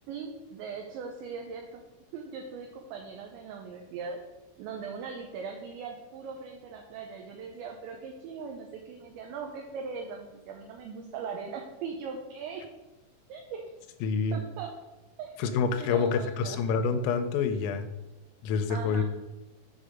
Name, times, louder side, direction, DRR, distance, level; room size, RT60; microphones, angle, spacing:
voice 1, 0.1-1.8 2.1-4.2 4.6-12.6 13.3-13.6 14.3-14.7 15.2-15.3 15.8-16.6 18.7-19.0, right 5 dB, 80° right, 2 dB, 2.7 m, -40 dB
voice 2, 14.0-14.4 15.4-17.9 18.4-19.0, left 5 dB, 85° left, 8 dB, 3.4 m, -27 dB
8.1 x 5.5 x 5.1 m, 1.1 s
omnidirectional pair, 5.9 m